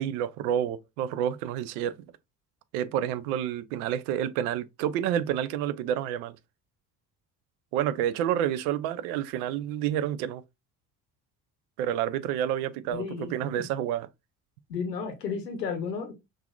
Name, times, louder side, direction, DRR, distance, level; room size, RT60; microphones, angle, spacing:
voice 1, 0.0-2.1 2.7-6.4 7.7-10.4 11.8-14.1, right 10 dB, 65° right, 0.5 m, -29 dB
voice 2, 12.9-13.3 13.5-13.6 14.7-16.1, left 6 dB, 90° left, 0.8 m, -32 dB
5.6 x 2.5 x 2.3 m
figure-of-eight pair, 55°, 48 cm